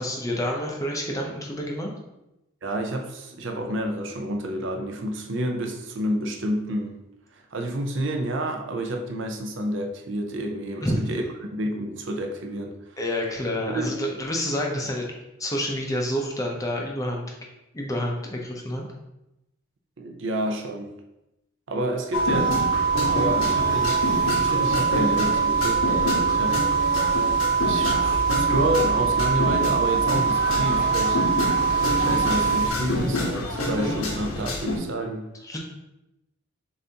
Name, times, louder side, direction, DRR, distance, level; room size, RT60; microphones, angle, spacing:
voice 1, 0.0-1.9 10.8-11.0 13.0-15.1 15.4-17.2 17.7-18.9 35.4-35.6, equal, 15° left, 0 dB, 0.5 m, -28 dB
voice 2, 2.6-7.0 7.3-11.2 11.5-12.7 13.7-13.9 20.0-20.9 21.7-22.6 23.1-26.6 27.6-31.2 32.0-35.3, right 1 dB, 55° right, 3 dB, 0.5 m, -29 dB
sound 1, 22.1-34.8, left 1 dB, 80° left, 1.0 m, -28 dB
sound 2, 22.1-32.7, right 6 dB, 65° left, 0.4 m, -23 dB
6.8 x 2.6 x 2.8 m, 0.92 s
head